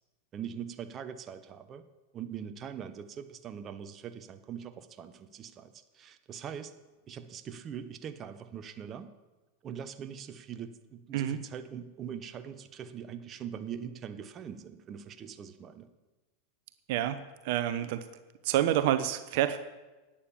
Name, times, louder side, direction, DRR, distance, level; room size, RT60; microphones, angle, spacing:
voice 1, 0.3-1.8 2.1-6.7 7.1-9.1 9.6-15.9, right 8 dB, 35° right, 10 dB, 1.0 m, -42 dB
voice 2, 16.9-18.0 18.4-19.6, right 12 dB, 60° right, 11 dB, 0.8 m, -28 dB
11.5 x 8.9 x 7.1 m, 1.2 s
hypercardioid pair, 105°, 0 cm